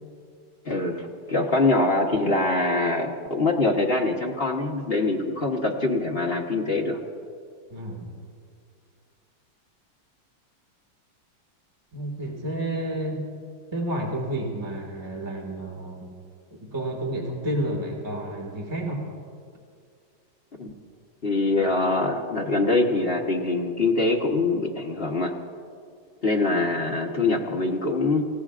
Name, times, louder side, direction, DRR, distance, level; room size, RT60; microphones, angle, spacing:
voice 1, 0.6-7.0 20.6-20.7 21.2-25.3 26.2-28.2, left 2 dB, 40° left, 0 dB, 1.0 m, -24 dB
voice 2, 7.7-8.2 11.9-13.2 13.7-16.1 16.6-19.0, right 1 dB, 15° right, -1 dB, 1.8 m, -30 dB
28.0 x 16.5 x 2.5 m, 2.2 s
omnidirectional pair, 2.2 m